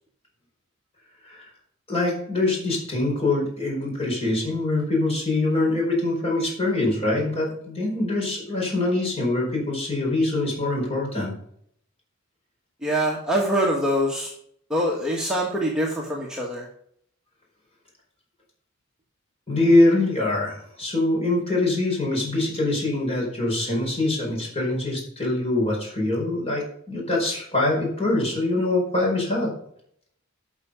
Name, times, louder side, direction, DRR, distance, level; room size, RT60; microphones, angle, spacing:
voice 1, 1.9-11.3 19.5-29.5, left 2 dB, 30° left, -3 dB, 4.9 m, -24 dB
voice 2, 12.8-14.3 14.7-16.7, equal, 5° right, -4 dB, 1.5 m, -24 dB
12.0 x 6.0 x 5.1 m, 0.67 s
head